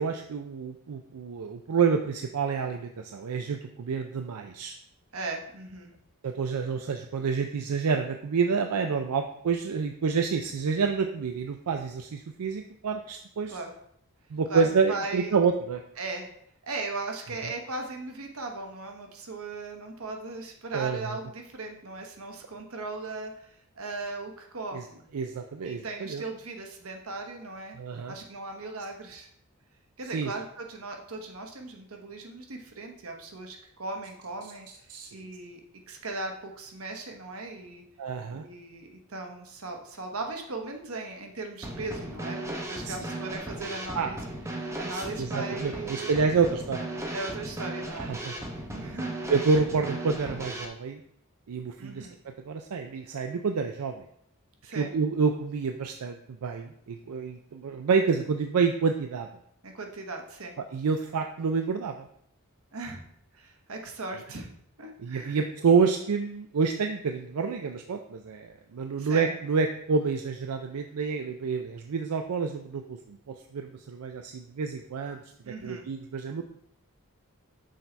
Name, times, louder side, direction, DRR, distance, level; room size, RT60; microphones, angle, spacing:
voice 1, 0.0-4.8 6.2-13.6 14.3-15.8 20.7-21.2 24.7-24.8 25.1-26.2 27.7-28.2 30.1-30.3 34.9-35.1 38.0-38.4 42.8-42.9 43.9-44.1 44.9-47.1 48.0-48.4 49.3-51.0 51.5-52.1 52.5-54.0 54.8-59.3 60.7-62.1 65.0-75.2 75.6-76.4, right 5 dB, 90° right, 5 dB, 0.5 m, -28 dB
voice 2, 5.1-5.9 13.5-13.7 14.5-15.3 16.0-16.3 16.6-25.1 25.6-29.3 30.0-34.7 35.1-35.6 35.9-37.8 38.3-44.2 44.5-46.2 47.1-48.1 48.7-49.2 51.8-52.2 54.6-54.9 59.6-60.6 62.7-63.0 63.3-65.3 69.0-69.3 75.4-75.9, right 3 dB, 65° right, 3 dB, 1.1 m, -38 dB
Drum kit / Snare drum, 41.6-50.7, right 1 dB, 15° right, 0.7 m, -36 dB
6.4 x 4.1 x 4.4 m, 0.69 s
head